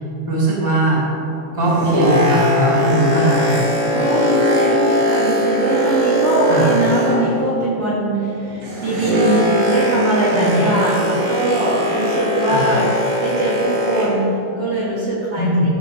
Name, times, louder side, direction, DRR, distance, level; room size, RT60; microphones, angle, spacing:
voice 1, 0.3-1.0 1.5-3.6 6.5-6.7 10.3-10.7 12.5-12.7 15.3-15.7, right 1 dB, 10° left, -5 dB, 1.9 m, -19 dB
Boat Water vehicle, 1.4-7.5 7.8-14.3 14.9-15.0, equal, 80° right, 5.4 m, -20 dB
voice 2, 3.9-12.9 13.2-15.7, right 1 dB, 45° right, -8 dB, 2.5 m, -21 dB
15.0 x 6.2 x 6.3 m, 2.7 s
omnidirectional pair, 4.8 m